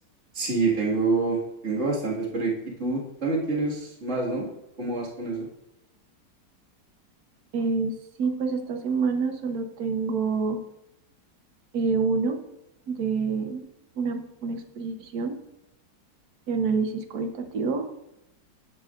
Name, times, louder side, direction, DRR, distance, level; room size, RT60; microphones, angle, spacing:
voice 1, 0.3-4.5 4.8-5.5, right 3 dB, 40° right, -4 dB, 2.3 m, -27 dB
voice 2, 7.5-7.9 8.2-10.6 11.7-12.4 12.9-13.6 14.0-15.4 16.5-17.9, right 4 dB, 60° right, 6 dB, 1.4 m, -27 dB
11.0 x 9.5 x 2.5 m, 0.87 s
omnidirectional pair, 1.9 m